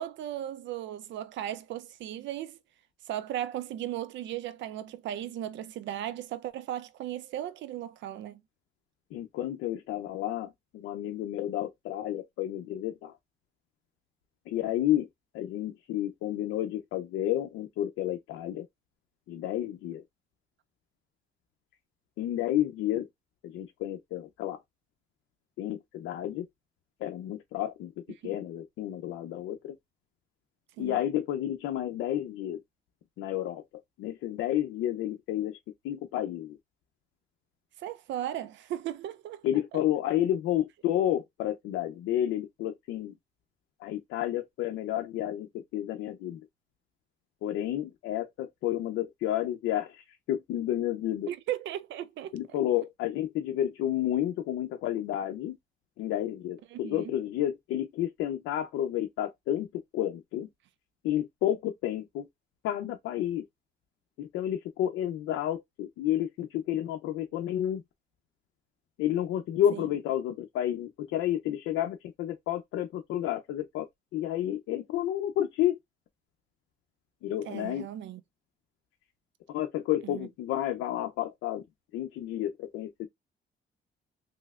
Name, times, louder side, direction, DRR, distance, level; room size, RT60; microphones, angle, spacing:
voice 1, 0.0-2.6 3.1-8.4 28.2-28.3 30.8-31.0 37.8-39.4 39.7-39.8 51.3-52.3 56.7-57.1 69.7-69.9 77.5-78.2 80.0-80.3, right 12 dB, 70° right, 0.4 m, -36 dB
voice 2, 9.1-13.2 14.5-15.1 15.3-18.7 19.3-20.0 22.2-23.1 23.4-24.6 25.6-26.5 27.0-29.6 30.8-32.6 33.2-33.6 34.0-35.6 35.8-36.6 39.4-43.1 43.8-45.5 45.7-46.4 47.4-51.3 52.3-55.6 56.0-59.7 59.9-60.5 61.0-62.3 62.6-63.4 64.2-67.8 69.0-73.9 74.1-75.8 77.2-77.9 79.5-81.6 81.9-83.1, left 12 dB, 90° left, 0.5 m, -31 dB
3.2 x 2.7 x 2.3 m
cardioid pair, 90°, 20 cm